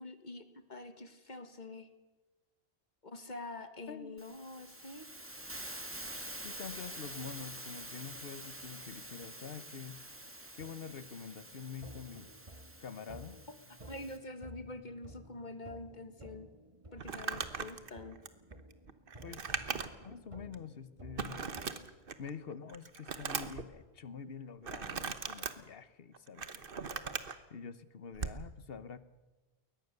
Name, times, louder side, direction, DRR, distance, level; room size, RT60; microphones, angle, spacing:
voice 1, 0.0-1.9 3.0-5.1 13.8-16.5 16.9-18.2, left 2 dB, 50° left, 9 dB, 1.7 m, -46 dB
voice 2, 3.9-4.2 6.4-10.0 10.5-12.3 12.8-13.4 19.2-19.6 20.0-21.4 22.2-26.9 27.5-29.0, left 6 dB, 70° left, 14 dB, 1.2 m, -46 dB
Hiss, 4.2-14.2, right 1 dB, 10° right, 1.7 m, -47 dB
sound 1, 10.6-21.6, right 1 dB, 30° right, 1.6 m, -54 dB
Crumpling crinkling, 17.0-20.1 20.5-20.6 21.2-22.3 22.7-23.7 24.6-25.5 26.1-27.4 28.1-28.4, right 5 dB, 60° right, 1.3 m, -39 dB
22.0 x 19.5 x 6.7 m, 1.2 s
omnidirectional pair, 1.0 m